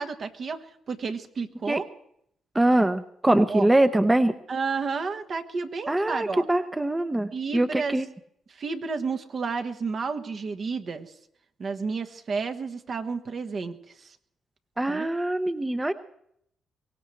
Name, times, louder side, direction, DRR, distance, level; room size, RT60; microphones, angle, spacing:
voice 1, 0.0-1.9 3.5-3.7 4.5-6.4 7.3-8.0 8.5-11.1 11.6-14.2 14.9-15.1, right 4 dB, 55° right, 8 dB, 1.4 m, -31 dB
voice 2, 2.5-4.3 5.9-8.1 14.8-15.9, right 1 dB, 15° right, 10 dB, 0.8 m, -23 dB
23.0 x 17.5 x 3.3 m, 0.72 s
supercardioid pair, 65°, 0 cm